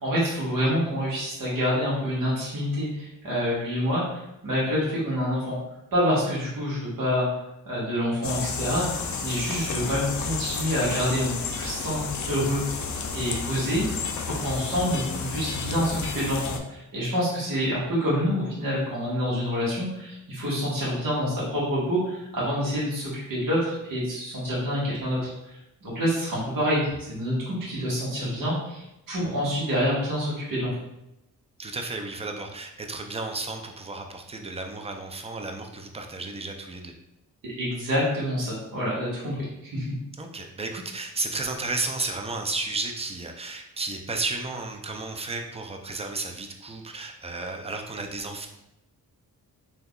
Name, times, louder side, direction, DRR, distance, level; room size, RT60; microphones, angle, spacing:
voice 1, 0.0-5.6 5.9-7.3 7.7-12.8 13.1-13.9 14.2-30.8 37.4-39.9, equal, 65° right, -7 dB, 1.5 m, -27 dB
sound 1, 8.2-16.6, left 5 dB, 55° left, 0.5 m, -32 dB
voice 2, 31.6-36.9 40.2-48.5, right 3 dB, 15° right, 4 dB, 0.4 m, -33 dB
3.4 x 2.8 x 2.3 m, 0.87 s
cardioid pair, 60°, 36 cm